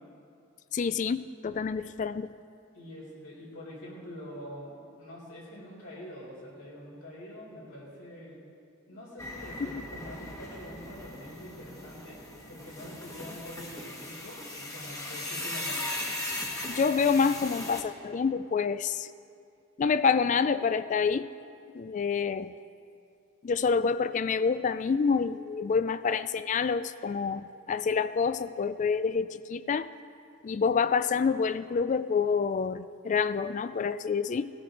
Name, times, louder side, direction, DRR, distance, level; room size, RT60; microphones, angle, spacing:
voice 1, 0.7-2.3 16.6-19.1 19.8-21.3 21.7-22.6 23.4-29.9 30.4-34.5, left 5 dB, 35° left, 14 dB, 0.3 m, -27 dB
voice 2, 2.7-4.7 5.0-8.4 8.9-15.8, equal, 90° left, -6 dB, 4.0 m, -45 dB
sound 1, 9.2-17.8, left 1 dB, 15° left, 1.1 m, -38 dB
19.0 x 12.5 x 3.9 m, 2.4 s
head